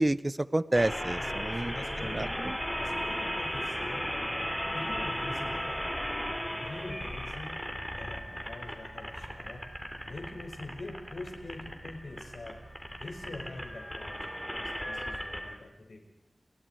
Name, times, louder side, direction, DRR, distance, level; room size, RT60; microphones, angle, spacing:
voice 1, 0.0-1.8 2.0-2.6, right 1 dB, 30° right, 16 dB, 0.9 m, -29 dB
sound 1, 0.7-15.6, equal, 5° left, 3.4 m, -36 dB
voice 2, 1.2-2.3 2.7-4.1 4.7-5.8 6.6-7.6 7.9-9.6 10.0-12.6 13.0-16.0, left 2 dB, 90° left, 2 dB, 5.8 m, -44 dB
Bus, 1.7-13.8, right 2 dB, 70° right, 7.0 m, -52 dB
30.0 x 23.0 x 4.7 m, 1.0 s
wide cardioid pair, 70°, 0 cm